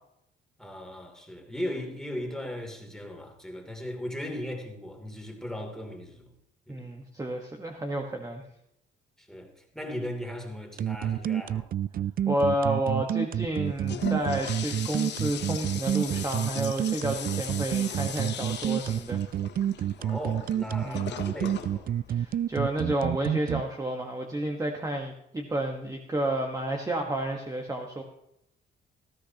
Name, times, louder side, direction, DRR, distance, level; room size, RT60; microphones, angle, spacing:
voice 1, 0.6-6.3 6.7-6.9 9.2-11.7 20.0-21.9, left 1 dB, 5° left, 2 dB, 3.0 m, -37 dB
voice 2, 6.7-8.4 12.3-19.2 20.8-21.1 22.1-28.0, right 1 dB, 15° right, 2 dB, 1.4 m, -31 dB
sound 1, 10.8-23.6, right 10 dB, 45° right, 0.4 m, -28 dB
Toilet flush, 13.6-23.0, left 9 dB, 60° left, 0.9 m, -39 dB
19.0 x 13.0 x 2.9 m, 0.79 s
cardioid pair, 90°, 20 cm